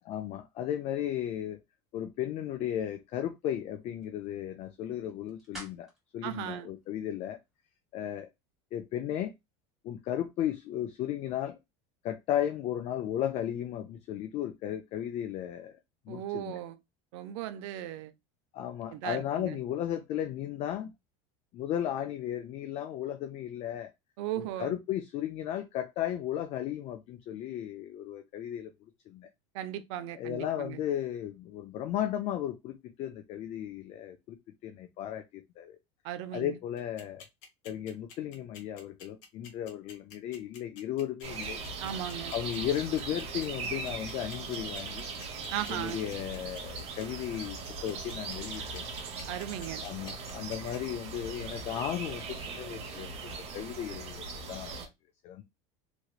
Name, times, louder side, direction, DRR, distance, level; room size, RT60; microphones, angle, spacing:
voice 1, 0.1-1.6 1.9-5.9 6.1-7.4 7.9-8.3 8.7-9.3 9.8-11.6 12.0-15.7 16.1-16.5 18.5-20.9 21.5-23.9 24.4-28.7 29.1-29.3 30.2-34.4 34.6-35.8 36.3-37.2 37.6-41.6 42.3-45.1 45.7-48.8 49.8-53.1 53.5-54.8 55.2-55.4, left 11 dB, 45° left, 0.4 m, -35 dB
sound 1, 2.6-7.7, equal, ahead, 1.5 m, -55 dB
voice 2, 6.2-6.7 16.1-16.8 17.1-18.1 18.9-19.6 24.2-24.7 29.5-30.8 36.0-36.6 41.8-42.3 45.5-46.0 49.3-49.8, right 12 dB, 75° right, 0.5 m, -37 dB
sound 2, 36.8-50.8, left 6 dB, 60° left, 1.2 m, -50 dB
sound 3, 41.2-54.9, right 4 dB, 40° right, 0.9 m, -40 dB
3.0 x 2.9 x 2.3 m
supercardioid pair, 135°, 16 cm